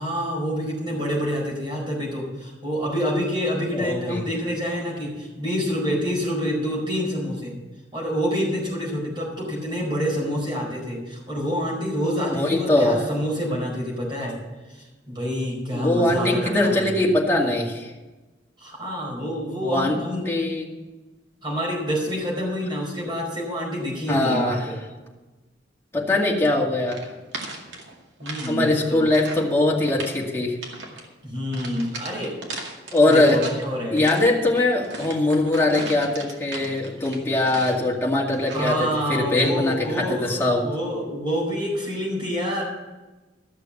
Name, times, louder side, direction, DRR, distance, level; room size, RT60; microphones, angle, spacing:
voice 1, 0.0-7.5 7.9-14.4 14.7-17.1 18.6-20.3 21.4-24.7 28.2-29.1 31.2-32.4 33.1-34.0 38.5-42.6, equal, 25° right, -3 dB, 4.7 m, -27 dB
voice 2, 3.7-4.2 12.3-13.0 15.7-17.9 19.6-20.0 20.3-20.7 24.1-24.7 25.9-27.0 28.4-30.6 32.9-33.4 33.9-40.7, left 2 dB, 15° left, -3 dB, 2.2 m, -21 dB
sound 1, 26.9-28.5 28.8-29.5 29.8-30.2 30.6-31.1 31.5-33.6 34.0-37.9 38.3-38.8, right 2 dB, 75° right, 2.2 m, -37 dB
13.5 x 6.7 x 7.3 m, 1.2 s
head